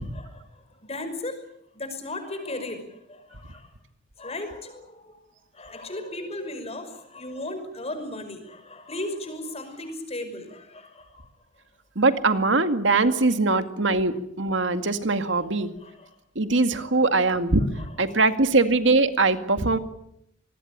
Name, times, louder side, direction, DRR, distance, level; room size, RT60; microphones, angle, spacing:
voice 1, 0.0-3.7 4.2-11.3 13.0-13.2 15.3-16.2 16.7-17.3 17.8-18.2, left 1 dB, 35° left, 9 dB, 5.5 m, -37 dB
voice 2, 12.0-15.7 16.4-17.6 18.0-19.8, right 3 dB, 75° right, 8 dB, 2.2 m, -21 dB
26.0 x 20.5 x 8.8 m, 0.77 s
head